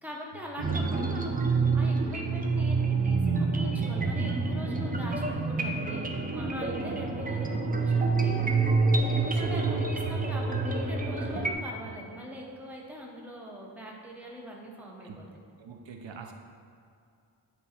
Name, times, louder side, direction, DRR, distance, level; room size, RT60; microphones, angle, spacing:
voice 1, 0.0-6.1 6.3-8.3 9.1-15.3, left 1 dB, 5° right, -2 dB, 0.8 m, -42 dB
sound 1, 0.6-11.5, right 4 dB, 20° right, 0.4 m, -27 dB
voice 2, 0.7-1.1 2.6-2.7 9.2-9.9 11.8-12.0 15.0-15.2 15.6-16.3, right 6 dB, 70° right, 3 dB, 0.7 m, -42 dB
9.0 x 4.0 x 4.3 m, 2.4 s
wide cardioid pair, 155°, 46 cm